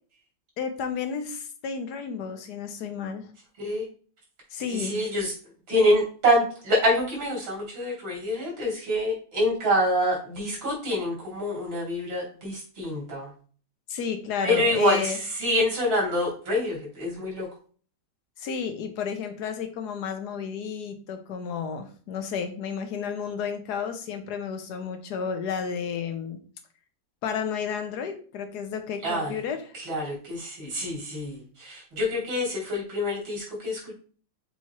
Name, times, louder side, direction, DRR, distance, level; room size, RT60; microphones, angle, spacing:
voice 1, 0.6-3.3 4.5-5.1 13.9-15.2 18.4-26.4 27.2-29.6, left 6 dB, 65° left, 7 dB, 1.4 m, -32 dB
voice 2, 4.7-5.3 5.7-13.3 14.4-17.5 29.0-29.3 29.7-33.9, equal, 80° right, -4 dB, 3.8 m, -26 dB
7.2 x 4.3 x 3.0 m, 0.41 s
omnidirectional pair, 2.1 m